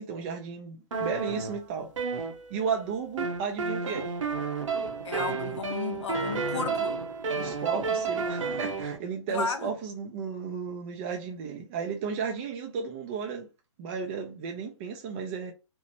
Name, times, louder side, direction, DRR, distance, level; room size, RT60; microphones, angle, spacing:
voice 1, 0.0-1.9 2.5-4.1 7.3-13.5 13.8-15.5, right 6 dB, 25° right, 0.3 m, -34 dB
sound 1, 0.9-2.8 3.2-9.0, right 4 dB, 85° right, 0.8 m, -31 dB
voice 2, 5.0-7.0 9.3-9.7, left 5 dB, 70° left, 0.6 m, -33 dB
2.8 x 2.0 x 2.8 m
hypercardioid pair, 140°, 16 cm